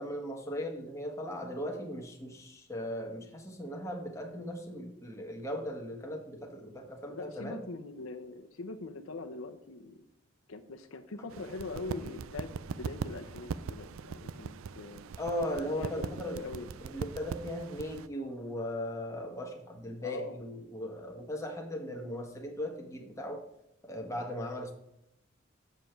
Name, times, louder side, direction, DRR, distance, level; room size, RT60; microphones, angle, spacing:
voice 1, 0.0-7.6 15.2-16.4 16.8-23.4 23.8-24.7, equal, 15° left, 1 dB, 1.3 m, -38 dB
voice 2, 7.1-10.0 10.5-15.0 15.8-16.7 20.0-20.4, left 3 dB, 90° left, 5 dB, 0.8 m, -42 dB
sound 1, 11.3-18.1, right 5 dB, 80° right, 0.4 m, -41 dB
7.3 x 6.8 x 4.5 m, 0.80 s
head